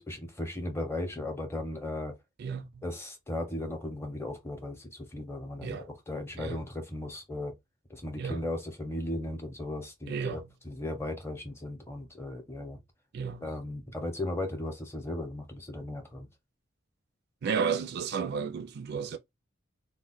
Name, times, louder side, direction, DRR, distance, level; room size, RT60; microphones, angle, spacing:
voice 1, 0.0-2.1 2.8-7.5 7.9-12.8 13.4-16.3, left 1 dB, 10° left, 0.6 m, -36 dB
voice 2, 2.4-2.8 5.6-5.9 6.4-6.6 8.2-8.4 10.1-10.5 13.1-13.5 17.4-19.2, right 6 dB, 55° right, 0.3 m, -33 dB
2.2 x 2.1 x 3.8 m
head